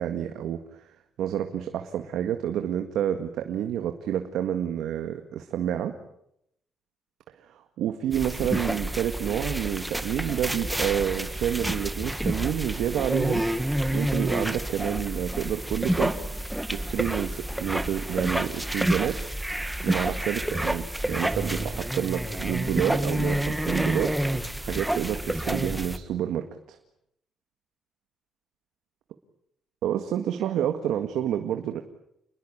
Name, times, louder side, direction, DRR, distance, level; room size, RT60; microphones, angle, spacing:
voice 1, 0.0-6.0 7.5-13.4 13.9-16.2 16.7-19.2 19.8-26.8 29.8-31.8, right 10 dB, 80° right, 6 dB, 1.9 m, -29 dB
sound 1, 8.1-26.0, right 1 dB, 5° right, 1.9 m, -29 dB
29.0 x 20.5 x 8.8 m, 0.77 s
cardioid pair, 90°, 0 cm